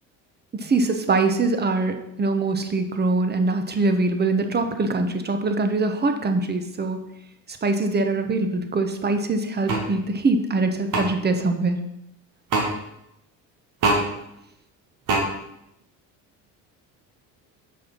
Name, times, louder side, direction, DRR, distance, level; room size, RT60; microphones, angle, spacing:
voice 1, 0.5-7.0 7.6-11.8, right 3 dB, 30° right, 6 dB, 1.2 m, -23 dB
sound 1, 9.7-9.9 10.9-11.1 12.5-12.7 13.8-14.0 15.1-15.2, right 2 dB, 65° right, 2.0 m, -21 dB
6.6 x 5.8 x 5.5 m, 0.83 s
supercardioid pair, 80°, 36 cm